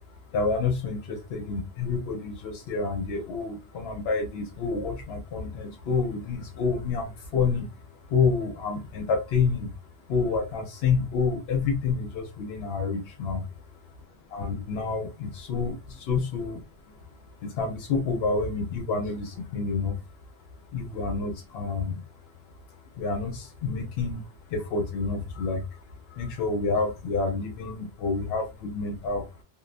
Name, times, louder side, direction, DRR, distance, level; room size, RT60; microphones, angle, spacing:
voice 1, 0.1-9.8 10.1-13.5 14.3-17.1 17.4-20.0 20.4-29.4, left 4 dB, 80° left, 3 dB, 0.8 m, -29 dB
2.7 x 2.0 x 2.4 m, 0.25 s
omnidirectional pair, 1.1 m